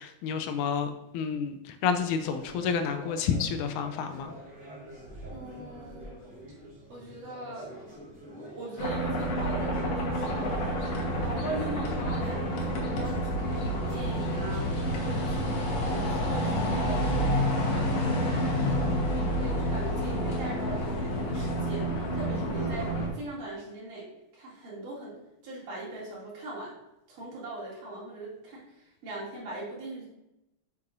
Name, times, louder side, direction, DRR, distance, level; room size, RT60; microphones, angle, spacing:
voice 1, 0.0-4.3, left 6 dB, 80° left, 8 dB, 2.0 m, -30 dB
sound 1, 1.8-15.5, equal, 45° right, 3.5 m, -47 dB
voice 2, 5.3-6.2 6.9-7.8 8.4-10.6 11.2-18.2 19.1-26.8 27.1-30.1, right 2 dB, 75° right, -7 dB, 4.3 m, -41 dB
sound 2, 8.8-23.1, equal, 60° left, 2.5 m, -29 dB
8.1 x 7.1 x 2.6 m, 0.88 s
omnidirectional pair, 3.7 m